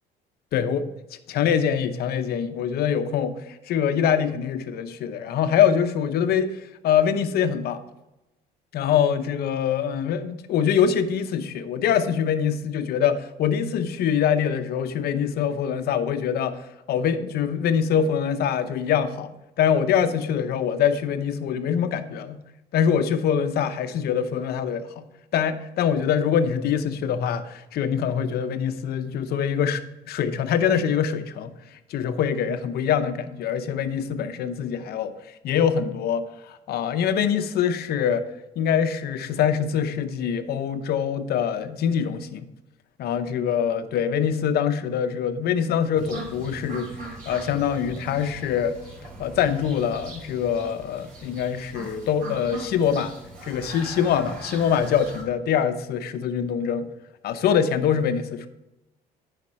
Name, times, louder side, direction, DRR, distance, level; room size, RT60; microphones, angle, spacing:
voice 1, 0.5-0.8 1.3-3.3 3.7-6.6 6.8-7.8 8.7-16.6 16.9-19.3 19.6-22.4 22.7-25.1 25.3-29.8 30.1-31.5 31.9-35.1 35.4-38.2 38.6-42.5 43.0-48.7 49.2-53.1 53.4-56.9 57.2-58.5, left 8 dB, 70° left, 0.8 m, -24 dB
sound 1, 45.9-55.2, right 2 dB, 55° right, 3.0 m, -40 dB
9.7 x 5.1 x 4.3 m
cardioid pair, 110°, 17 cm